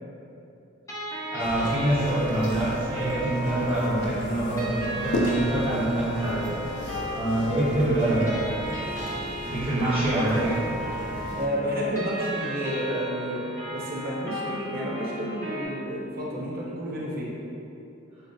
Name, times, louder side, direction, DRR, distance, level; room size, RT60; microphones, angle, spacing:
sound 1, 0.9-15.7, right 1 dB, 15° left, 0.6 m, -35 dB
voice 1, 1.3-6.6 7.1-8.5 9.4-10.6, right 1 dB, 30° right, -11 dB, 1.0 m, -25 dB
sound 2, 1.4-11.5, left 1 dB, 60° left, 0.4 m, -35 dB
voice 2, 11.3-13.4 13.7-17.3, equal, 45° right, -5 dB, 0.6 m, -30 dB
5.3 x 2.1 x 2.5 m, 2.7 s
head